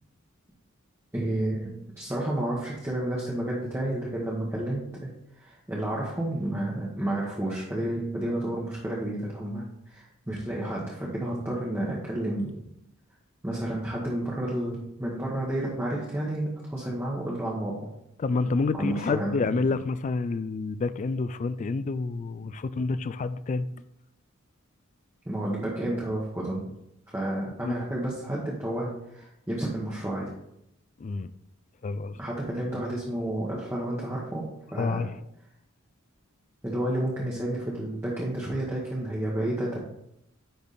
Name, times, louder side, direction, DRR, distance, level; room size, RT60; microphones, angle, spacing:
voice 1, 1.1-12.5 13.4-17.9 18.7-19.4 25.2-26.7 27.1-30.3 32.1-35.1 36.6-39.8, right 1 dB, 10° right, -5 dB, 1.1 m, -31 dB
voice 2, 18.2-23.7 27.6-27.8 31.0-31.3 31.8-32.2 34.8-35.1, left 4 dB, 35° left, 14 dB, 0.3 m, -28 dB
10.0 x 3.5 x 4.1 m, 0.81 s
head